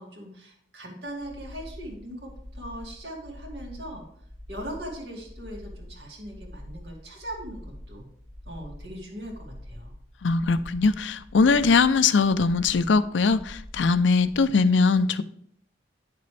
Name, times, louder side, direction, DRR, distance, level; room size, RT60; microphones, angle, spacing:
voice 1, 0.0-4.0 4.5-8.1 8.5-9.9, right 1 dB, 65° right, 2.4 m, -40 dB
sound 1, 1.1-14.5, left 1 dB, 45° right, 2.1 m, -45 dB
voice 2, 10.2-15.2, left 4 dB, 80° left, 0.5 m, -21 dB
9.5 x 6.7 x 3.3 m
head